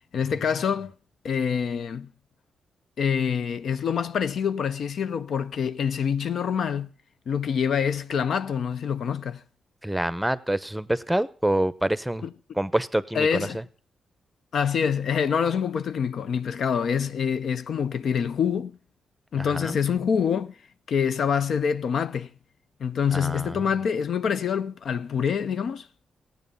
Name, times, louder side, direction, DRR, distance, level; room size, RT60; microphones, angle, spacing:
voice 1, 0.1-0.9 1.2-2.1 3.0-6.9 7.3-9.4 12.2-12.3 13.1-13.6 14.5-18.8 19.3-20.6 20.9-22.3 22.8-25.9, left 7 dB, 70° left, 0.6 m, -26 dB
voice 2, 9.8-12.3 12.6-13.6 19.4-19.8 23.1-23.7, right 1 dB, 5° right, 0.8 m, -27 dB
15.5 x 9.2 x 5.4 m
cardioid pair, 75°, 0 cm